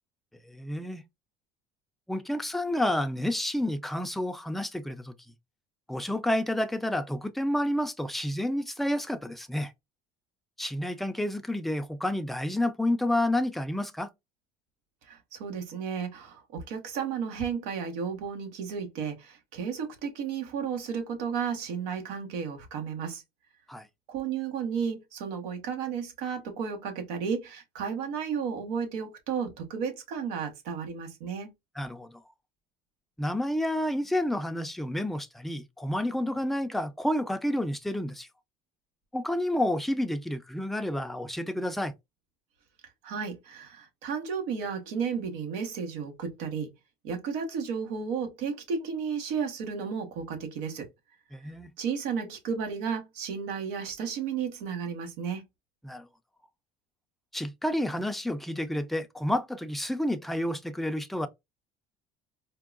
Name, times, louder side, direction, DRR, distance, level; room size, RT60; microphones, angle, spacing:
voice 1, 0.4-1.0 2.1-5.1 5.9-9.7 10.6-14.1 23.7-23.9 31.8-32.2 33.2-38.3 39.1-41.9 51.3-51.7 55.8-56.1 57.3-61.3, left 1 dB, ahead, 0.4 m, -30 dB
voice 2, 15.1-23.2 24.1-31.5 43.0-46.7 47.0-50.9 51.8-55.4, right 6 dB, 90° right, 1.2 m, -33 dB
4.5 x 2.2 x 2.4 m
cardioid pair, 120°, 16 cm